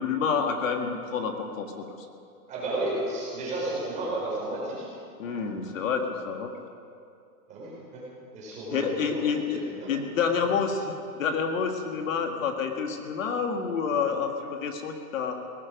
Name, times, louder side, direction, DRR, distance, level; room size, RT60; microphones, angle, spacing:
voice 1, 0.0-1.9 5.2-6.5 8.7-15.4, left 6 dB, 55° left, 4 dB, 1.8 m, -28 dB
voice 2, 2.5-4.9 7.5-8.0 8.3-9.9, right 2 dB, 15° right, -6 dB, 4.4 m, -32 dB
18.0 x 15.5 x 5.1 m, 2.4 s
hypercardioid pair, 170°, 46 cm